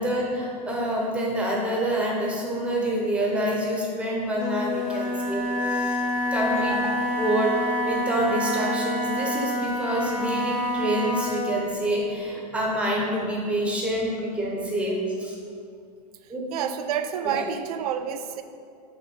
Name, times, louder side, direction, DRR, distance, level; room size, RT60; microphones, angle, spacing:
voice 1, 0.0-6.0 6.3-6.7 7.2-7.5 7.9-15.4 16.3-16.4 17.3-17.4, right 1 dB, 5° right, -3 dB, 0.8 m, -27 dB
Wind instrument woodwind instrument, 4.3-11.5, left 1 dB, 70° left, 1.4 m, -27 dB
voice 2, 6.5-6.9 16.2-18.4, right 9 dB, 60° right, 9 dB, 0.5 m, -30 dB
4.8 x 3.7 x 5.3 m, 2.4 s
supercardioid pair, 155°, 21 cm